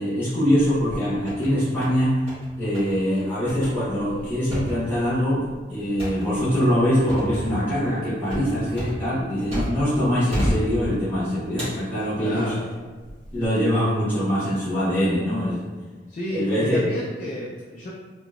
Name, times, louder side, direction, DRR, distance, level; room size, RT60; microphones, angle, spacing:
voice 1, 0.0-2.1 2.6-5.4 5.7-12.5 13.3-15.6 16.3-16.8, equal, 10° left, -14 dB, 1.2 m, -23 dB
sound 1, 0.6-1.5 1.8-2.5 2.7-3.0 3.5-10.0 10.3-11.1 11.6-12.5 13.1-13.5, equal, 30° right, 1.3 m, -31 dB
voice 2, 12.2-12.7 16.1-17.9, left 1 dB, 45° left, -4 dB, 0.3 m, -32 dB
2.9 x 2.8 x 2.4 m, 1.4 s
head